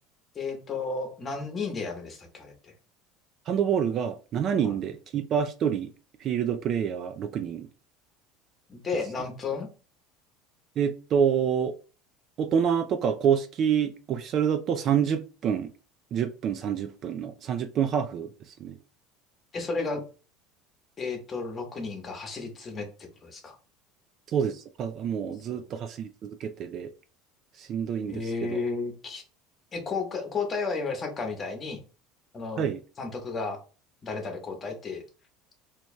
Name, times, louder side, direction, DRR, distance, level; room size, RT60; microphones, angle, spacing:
voice 1, 0.3-2.7 4.6-4.8 8.7-9.7 19.5-20.0 21.0-22.9 23.2-23.5 25.5-25.7 28.1-29.2 29.7-31.8 32.3-32.7 33.0-33.6 34.0-35.0, left 4 dB, 30° left, 3 dB, 1.2 m, -33 dB
voice 2, 3.5-5.9 6.2-7.7 10.8-11.7 12.4-15.7 16.1-18.3 18.6-18.8 24.3-26.9 27.6-28.6 32.6-32.8, right 8 dB, 45° right, 8 dB, 0.4 m, -27 dB
4.5 x 2.8 x 2.2 m, 0.35 s
supercardioid pair, 125°, 0 cm